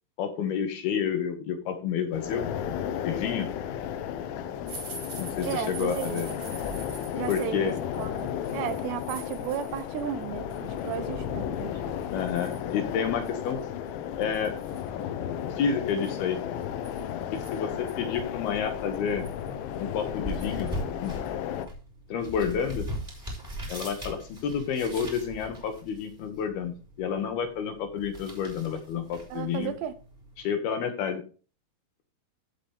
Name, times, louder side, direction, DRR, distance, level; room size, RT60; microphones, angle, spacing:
voice 1, 0.2-2.4 3.0-3.5 5.1-6.3 7.3-7.8 12.1-13.6 14.2-14.6 15.6-16.4 17.3-19.3 19.8-20.7 21.0-21.1 22.1-22.9 23.7-29.8 30.4-31.2, left 7 dB, 70° left, 2.7 m, -30 dB
sound 1, 2.1-21.7, left 9 dB, 85° left, 3.3 m, -34 dB
sound 2, 4.7-10.0 10.4-11.0 11.5-11.6 12.0-12.7 13.2-13.3 13.6-13.7 14.2-14.9 15.9-17.9 18.5-18.6 18.9-19.5 20.4-20.7 21.0-21.3 21.6-21.7, right 4 dB, 45° right, 6.1 m, -45 dB
voice 2, 5.4-6.6 7.1-11.8 29.3-29.9, right 10 dB, 80° right, 2.8 m, -34 dB
sound 3, 19.5-30.5, equal, 10° right, 3.3 m, -41 dB
15.0 x 5.8 x 3.4 m
omnidirectional pair, 5.3 m